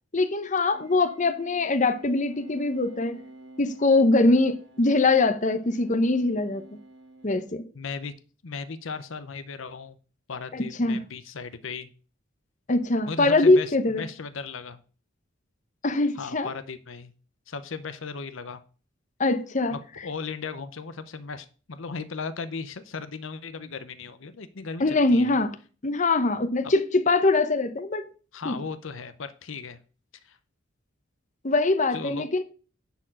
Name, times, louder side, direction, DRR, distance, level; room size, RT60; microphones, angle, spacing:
voice 1, 0.1-3.2 3.6-6.6 7.2-7.7 10.5-11.0 12.7-14.0 15.8-16.5 19.2-19.8 24.8-25.5 25.8-28.1 28.4-28.6 31.4-32.4, left 2 dB, 35° left, 0.8 m, -22 dB
sound 1, 0.7-7.4, right 2 dB, 60° right, 2.3 m, -49 dB
voice 2, 7.7-8.1 8.4-10.0 10.3-11.9 13.1-14.8 16.2-17.1 17.5-18.6 19.7-25.4 26.6-26.7 28.3-29.8 30.2-30.4 31.9-32.3, left 5 dB, 70° left, 0.7 m, -36 dB
10.5 x 4.6 x 7.4 m
head